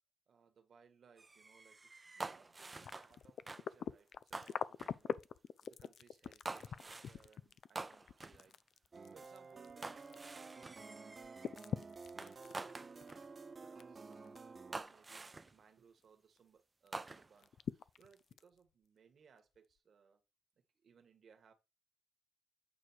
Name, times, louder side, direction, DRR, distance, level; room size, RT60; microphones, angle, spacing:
voice 1, 0.3-12.1 12.3-13.0 13.5-20.2 20.8-21.5, right 6 dB, 70° right, 1.7 m, -67 dB
sound 1, 1.2-3.2 3.5-3.7 4.3-5.0 6.4-7.2 7.7-8.4 9.8-11.5 12.2-13.3 14.0-14.1 14.7-15.6 16.9-17.5, right 3 dB, 25° right, 0.5 m, -47 dB
sound 2, 2.8-10.6 10.9-13.8 14.1-14.6 15.0-15.1 16.4-16.5 16.9-17.0 17.4-18.6 19.4-19.5, left 8 dB, 80° left, 0.4 m, -44 dB
sound 3, 8.9-14.8, right 4 dB, 40° right, 1.0 m, -52 dB
8.8 x 4.7 x 4.5 m
cardioid pair, 95°, 0 cm